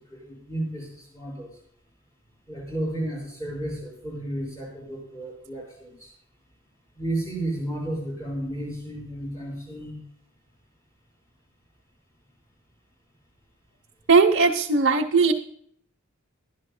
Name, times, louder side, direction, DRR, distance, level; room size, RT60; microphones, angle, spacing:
voice 1, 0.1-1.5 2.5-6.1 7.0-10.0, right 1 dB, 15° left, -5 dB, 6.2 m, -32 dB
voice 2, 14.1-15.3, right 4 dB, 55° right, 0 dB, 0.9 m, -18 dB
20.0 x 12.0 x 2.3 m, 0.64 s
head